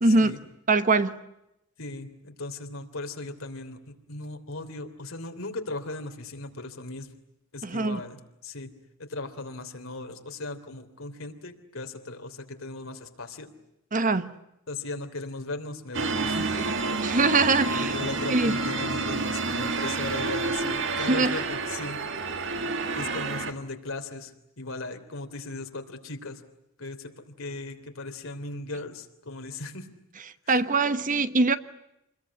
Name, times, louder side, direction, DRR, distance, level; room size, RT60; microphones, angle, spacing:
voice 1, 0.0-0.4 0.7-1.2 7.6-8.0 13.9-14.3 17.0-18.0 18.3-18.6 21.1-21.4 30.5-31.6, right 3 dB, 40° right, 12 dB, 1.1 m, -23 dB
voice 2, 1.8-7.1 7.5-8.7 9.0-13.5 14.7-16.7 17.1-17.2 17.7-22.0 22.9-24.3 24.6-26.4 26.8-29.9 30.5-30.6, left 2 dB, 75° left, 6 dB, 3.3 m, -37 dB
sound 1, 15.9-23.5, right 3 dB, 60° right, 2.2 m, -29 dB
28.0 x 21.5 x 9.7 m, 0.87 s
head